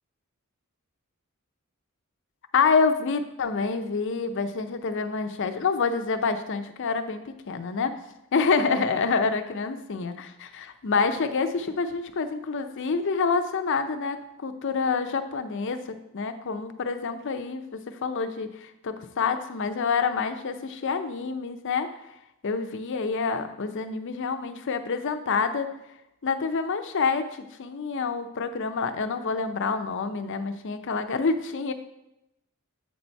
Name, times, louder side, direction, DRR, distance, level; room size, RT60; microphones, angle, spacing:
voice 1, 2.5-7.9 8.3-21.9 22.4-25.7 26.2-27.3 27.6-31.7, left 4 dB, 60° left, 8 dB, 0.5 m, -27 dB
7.8 x 4.1 x 4.5 m, 0.88 s
head